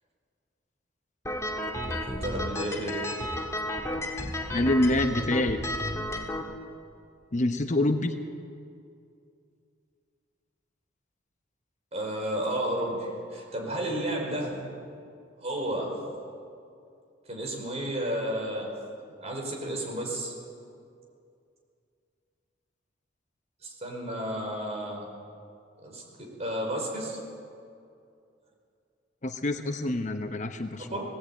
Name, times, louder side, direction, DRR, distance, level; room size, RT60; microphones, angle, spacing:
sound 1, 1.2-6.4, left 1 dB, 15° left, 1.8 m, -32 dB
voice 1, 1.9-3.1 11.9-14.6 15.4-16.1 17.3-18.8 19.2-20.3 23.6-25.1 25.8-27.2 30.9-31.0, right 1 dB, 35° right, 0 dB, 5.1 m, -32 dB
voice 2, 4.5-5.6 7.3-8.1 29.2-30.9, left 1 dB, 40° left, 7 dB, 0.9 m, -26 dB
19.0 x 18.0 x 9.0 m, 2.4 s
head